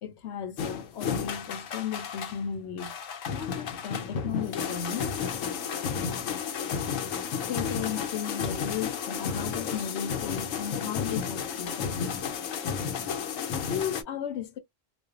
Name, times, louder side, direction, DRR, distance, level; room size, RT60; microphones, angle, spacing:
voice 1, 0.0-3.0 3.3-5.1 7.5-12.0 13.5-14.6, left 8 dB, 65° left, 0.8 m, -35 dB
sound 1, 0.6-2.4 2.8-14.0, left 6 dB, 90° left, 1.0 m, -32 dB
2.5 x 2.2 x 2.3 m
omnidirectional pair, 1.3 m